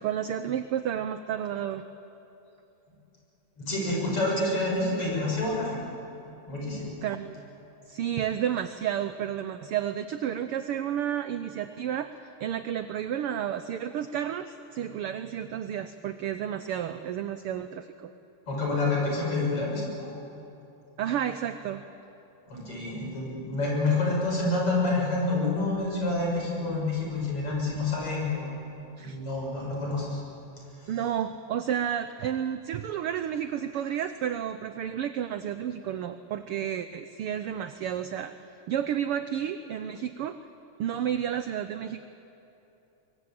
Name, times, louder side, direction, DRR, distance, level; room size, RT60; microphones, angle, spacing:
voice 1, 0.0-1.8 7.0-7.4 7.9-12.1 12.4-18.1 21.0-21.8 29.0-29.2 30.9-38.3 38.7-40.4 40.8-42.0, right 9 dB, 80° right, 10 dB, 1.3 m, -31 dB
voice 2, 3.6-5.8 6.5-6.9 18.5-20.1 22.5-28.5 29.0-30.2 30.8-30.9, left 2 dB, 50° left, -2 dB, 7.2 m, -28 dB
23.5 x 22.5 x 8.7 m, 2.9 s
omnidirectional pair, 3.4 m